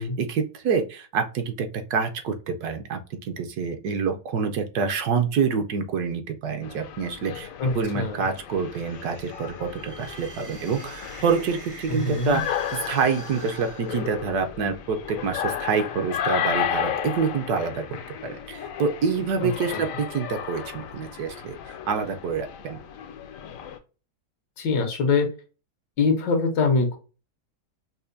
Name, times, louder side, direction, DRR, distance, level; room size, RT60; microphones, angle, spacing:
voice 1, 0.0-7.5 7.7-17.8 18.2-22.8, right 5 dB, 70° right, 6 dB, 1.1 m, -27 dB
sound 1, 6.6-23.8, left 9 dB, 70° left, 0.8 m, -34 dB
voice 2, 7.6-8.2 11.9-12.4 19.7-19.9 24.6-25.3 26.0-27.0, left 4 dB, 85° left, 4 dB, 1.6 m, -23 dB
sound 2, 8.5-14.6, right 2 dB, 40° right, 0.4 m, -44 dB
5.5 x 2.1 x 2.6 m, 0.33 s
omnidirectional pair, 1.9 m